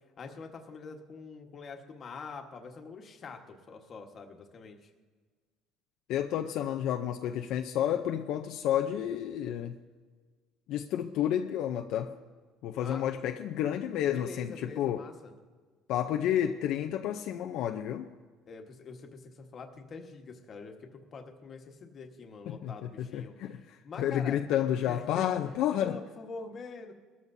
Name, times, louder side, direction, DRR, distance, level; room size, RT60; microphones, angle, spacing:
voice 1, 0.2-4.9 12.7-13.0 14.1-15.3 18.5-24.4 24.8-25.3 25.7-26.9, left 4 dB, 35° left, 1.4 m, -45 dB
voice 2, 6.1-9.8 10.7-12.1 12.6-15.0 15.9-18.1 22.5-26.0, left 10 dB, 65° left, 0.6 m, -31 dB
22.0 x 13.5 x 2.7 m
cardioid pair, 150°, 0 cm